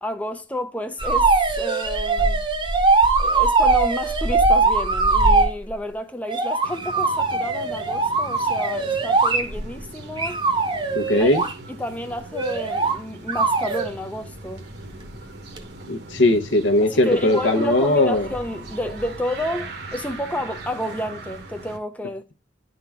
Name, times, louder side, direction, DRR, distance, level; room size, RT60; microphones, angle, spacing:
voice 1, 0.0-2.4 3.2-10.4 11.2-11.3 11.7-14.6 16.9-22.3, left 1 dB, 10° left, 0.5 m, -30 dB
sound 1, 1.0-5.5 6.3-9.8 10.2-11.5 12.3-13.0 13.3-13.9 15.6-15.7, right 3 dB, 25° right, 0.8 m, -20 dB
sound 2, 6.6-21.8, right 2 dB, 55° right, 1.1 m, -39 dB
voice 2, 10.9-11.4 15.9-18.3, left 1 dB, 75° left, 1.0 m, -19 dB
10.5 x 3.8 x 3.5 m
head